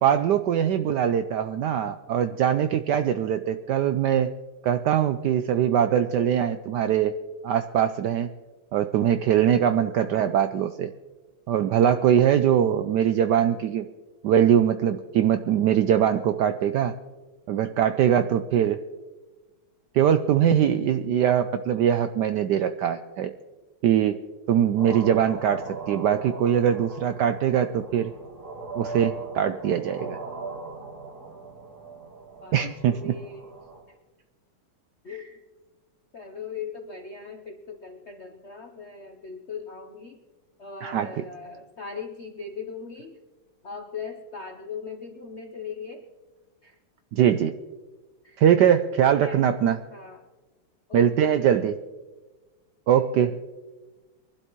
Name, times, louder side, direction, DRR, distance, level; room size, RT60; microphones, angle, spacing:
voice 1, 0.0-4.3 4.6-7.1 7.4-8.3 8.7-10.9 11.5-13.9 14.2-16.9 17.5-18.8 19.9-23.3 23.8-24.2 24.5-28.1 28.8-30.2 32.5-33.1 40.8-41.1 47.1-47.5 48.4-49.8 50.9-51.8 52.9-53.3, right 9 dB, 75° right, 9 dB, 0.9 m, -22 dB
sound 1, 24.8-33.8, right 3 dB, 45° right, 3.6 m, -39 dB
voice 2, 32.4-33.5 33.9-34.0 35.0-35.4 36.1-40.2 40.6-43.2 43.6-46.1 46.6-46.8 48.2-48.4 49.0-49.4 49.9-50.3 50.9-51.5 52.9-53.5, left 5 dB, 60° left, 4 dB, 0.7 m, -39 dB
23.5 x 11.5 x 3.0 m, 1.2 s
omnidirectional pair, 2.3 m